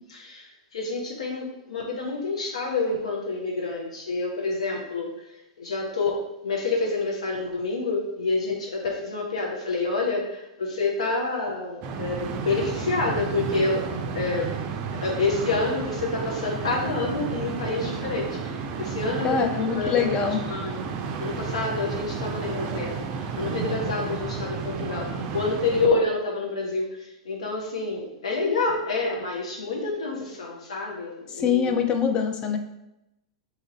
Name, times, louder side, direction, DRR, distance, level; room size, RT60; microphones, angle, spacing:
voice 1, 0.1-5.1 5.6-14.5 15.0-20.8 21.2-31.8, left 3 dB, 75° left, -1 dB, 0.7 m, -28 dB
sound 1, 11.8-25.9, right 5 dB, 40° right, 0.4 m, -32 dB
voice 2, 19.2-20.4 31.3-32.6, left 7 dB, 30° left, 5 dB, 0.5 m, -24 dB
2.9 x 2.5 x 4.1 m, 0.89 s
hypercardioid pair, 105°, 3 cm